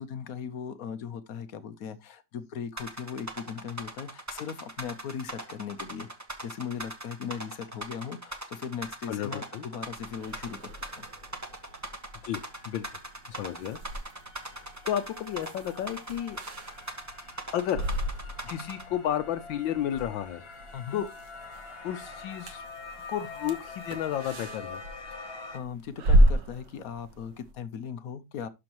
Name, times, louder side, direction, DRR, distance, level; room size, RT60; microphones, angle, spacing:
voice 1, 0.0-6.1 6.4-11.0 18.4-18.7 20.7-21.0 25.1-25.2 25.5-28.5, left 7 dB, 60° left, 1.0 m, -38 dB
sound 1, 2.8-18.8, right 1 dB, 15° right, 0.7 m, -39 dB
voice 2, 9.1-9.6 12.2-12.8 13.3-13.8 14.5-16.4 17.5-17.8 18.5-20.4 20.9-21.1 21.8-22.6 23.1-24.8, left 10 dB, 75° left, 1.4 m, -32 dB
sound 2, 10.0-27.5, right 1 dB, 65° right, 1.7 m, -32 dB
sound 3, 11.1-11.2 11.5-25.6, left 4 dB, 35° left, 1.5 m, -46 dB
11.5 x 5.9 x 3.0 m
omnidirectional pair, 2.1 m